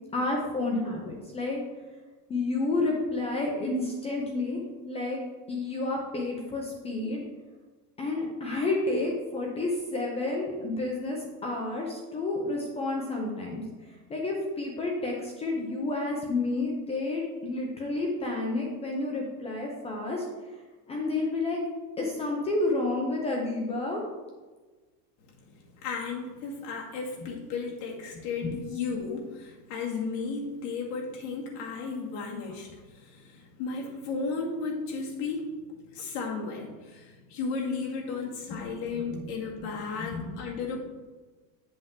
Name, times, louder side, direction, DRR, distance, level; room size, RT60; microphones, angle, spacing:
voice 1, 0.1-1.6 2.3-5.2 5.5-7.2 8.0-20.2 20.9-21.6 22.0-24.0 38.5-39.3 39.6-39.7 40.0-40.4, left 2 dB, 15° left, -1 dB, 0.4 m, -30 dB
voice 2, 25.4-35.6 35.8-40.8, left 4 dB, 60° left, -2 dB, 2.2 m, -34 dB
7.8 x 6.7 x 3.6 m, 1.3 s
cardioid pair, 170°, 49 cm